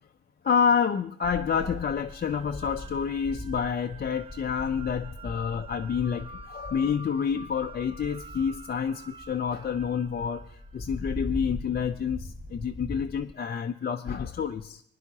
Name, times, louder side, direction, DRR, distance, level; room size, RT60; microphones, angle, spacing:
voice 1, 0.4-14.8, left 7 dB, 35° left, 4 dB, 0.5 m, -28 dB
sound 1, 1.2-13.3, left 1 dB, 5° left, 1.6 m, -41 dB
sound 2, 2.0-11.2, right 2 dB, 20° right, 0.8 m, -48 dB
21.0 x 10.0 x 2.8 m, 0.64 s
cardioid pair, 90°, 30 cm